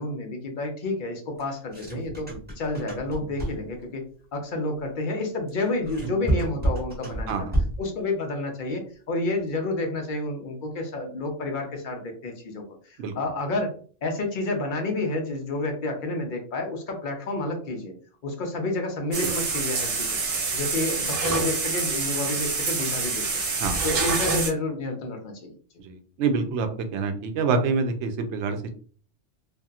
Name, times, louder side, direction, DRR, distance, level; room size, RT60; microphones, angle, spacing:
voice 1, 0.0-4.0 4.3-7.3 7.8-12.6 12.9-13.7 14.0-17.9 18.2-20.1 20.5-23.2 23.8-25.5, left 2 dB, 50° left, 3 dB, 0.7 m, -30 dB
sound 1, 1.4-3.8 5.5-7.9, right 1 dB, 10° right, 1.2 m, -29 dB
voice 2, 7.3-7.6 13.0-13.1 19.2-19.3 23.6-23.8 25.8-28.7, right 4 dB, 75° right, 6 dB, 0.8 m, -26 dB
sound 2, 19.1-24.5, right 4 dB, 55° right, 0.4 m, -26 dB
2.8 x 2.5 x 2.3 m, 0.43 s
omnidirectional pair, 1.2 m